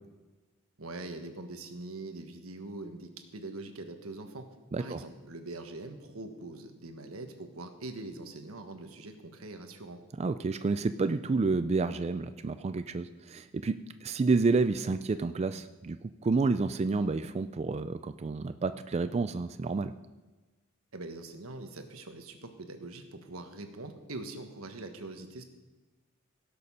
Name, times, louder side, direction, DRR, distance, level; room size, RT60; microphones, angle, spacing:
voice 1, 0.8-4.4 4.8-10.0 20.9-25.4, right 2 dB, 90° right, 6 dB, 1.4 m, -43 dB
voice 2, 4.7-5.0 10.2-19.9, right 3 dB, 30° right, 11 dB, 0.3 m, -29 dB
17.0 x 6.8 x 5.5 m, 1.2 s
head